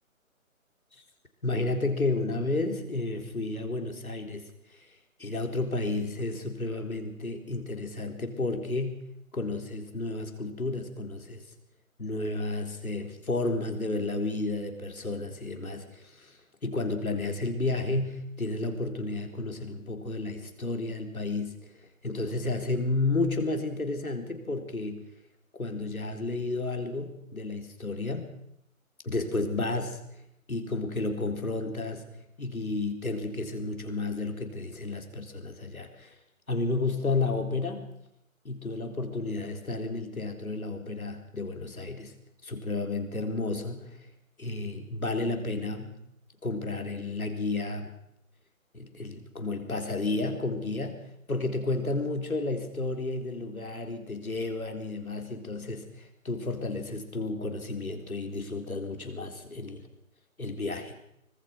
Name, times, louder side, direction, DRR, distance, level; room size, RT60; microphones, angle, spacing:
voice 1, 1.4-4.4 4.7-4.9 5.2-9.0 9.3-11.4 12.0-21.5 22.0-25.0 25.6-28.3 29.0-30.0 30.5-32.0 32.4-36.1 36.5-37.9 38.4-42.1 42.4-44.1 44.4-45.9 46.4-47.9 48.7-51.0 51.3-59.9 60.4-61.0, left 2 dB, 85° left, 5 dB, 4.2 m, -32 dB
24.5 x 18.5 x 6.0 m, 0.78 s
figure-of-eight pair, 155°, 42 cm